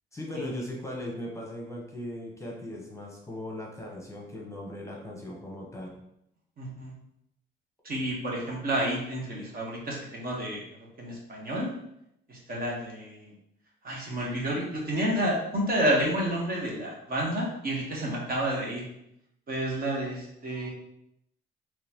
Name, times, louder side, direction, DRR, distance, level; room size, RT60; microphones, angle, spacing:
voice 1, 0.1-5.9, left 1 dB, 15° left, -2 dB, 0.9 m, -38 dB
voice 2, 6.6-6.9 7.8-10.6 11.0-11.7 12.3-13.3 13.8-18.8 19.5-20.7, right 1 dB, 50° right, -2 dB, 1.2 m, -30 dB
3.8 x 3.0 x 2.9 m, 0.79 s
cardioid pair, 90°, 20 cm